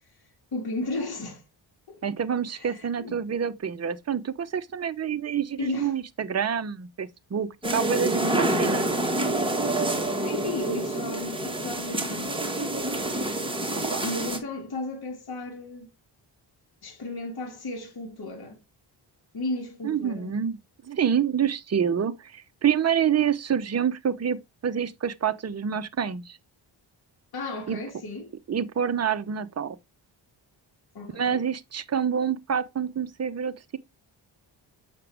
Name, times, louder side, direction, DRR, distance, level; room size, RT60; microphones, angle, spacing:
voice 1, 0.5-1.4 1.9-2.0 2.5-3.2 5.6-5.9 10.2-12.5 14.0-15.9 16.8-18.6 19.3-20.3 27.3-28.3 30.9-31.4, left 2 dB, 50° left, 2.3 m, -34 dB
voice 2, 2.0-8.9 13.7-14.0 19.8-20.6 20.8-26.4 27.7-27.8 28.5-29.8 31.2-33.8, right 8 dB, 35° right, 0.7 m, -27 dB
sound 1, 7.6-14.4, right 1 dB, 10° right, 1.7 m, -27 dB
7.5 x 6.0 x 3.4 m
cardioid pair, 100°, 47 cm